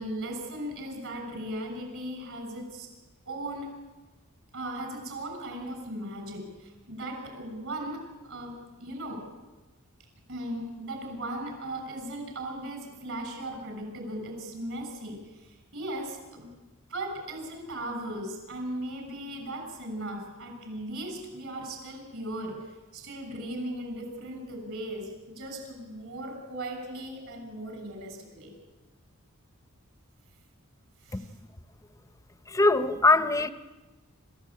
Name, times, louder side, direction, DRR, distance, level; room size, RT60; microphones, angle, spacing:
voice 1, 0.0-2.9 3.2-3.7 4.5-9.2 10.3-16.5 16.9-22.6 22.9-28.6 31.0-31.3, right 1 dB, 65° right, 6.3 m, -37 dB
voice 2, 32.5-33.5, left 2 dB, 15° left, 0.8 m, -22 dB
27.5 x 14.0 x 8.6 m
head